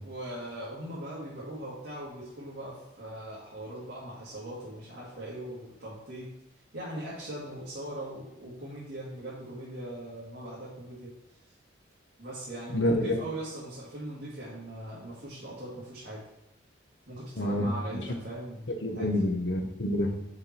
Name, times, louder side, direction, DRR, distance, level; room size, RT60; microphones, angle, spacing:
voice 1, 0.0-6.3 6.7-11.1 12.2-16.2 17.1-19.1, right 1 dB, 55° right, -8 dB, 2.0 m, -40 dB
voice 2, 12.7-13.2 17.4-17.7 18.8-20.1, left 1 dB, 65° left, 4 dB, 0.9 m, -27 dB
6.9 x 4.5 x 4.3 m, 0.91 s
head